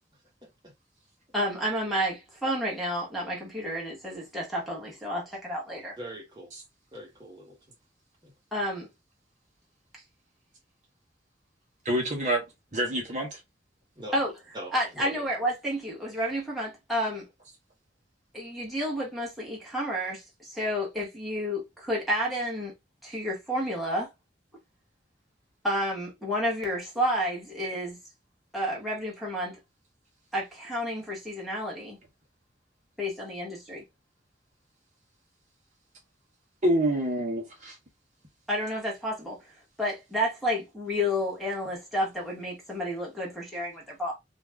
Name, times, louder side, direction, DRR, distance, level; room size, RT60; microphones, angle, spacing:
voice 1, 0.4-0.7 6.0-6.5 6.9-7.7 8.2-8.3 14.0-14.2 14.5-15.3, equal, 25° right, 1.1 m, -42 dB
voice 2, 1.3-5.9 8.5-8.9 14.1-14.3 14.7-17.2 18.3-22.7 23.0-24.1 25.6-28.0 28.5-29.6 30.3-32.0 33.0-33.8 38.5-39.4 39.8-44.1, equal, ahead, 1.2 m, -30 dB
voice 3, 11.8-12.4 12.7-13.4 36.6-37.8, right 1 dB, 40° right, 0.9 m, -27 dB
2.6 x 2.3 x 3.3 m
head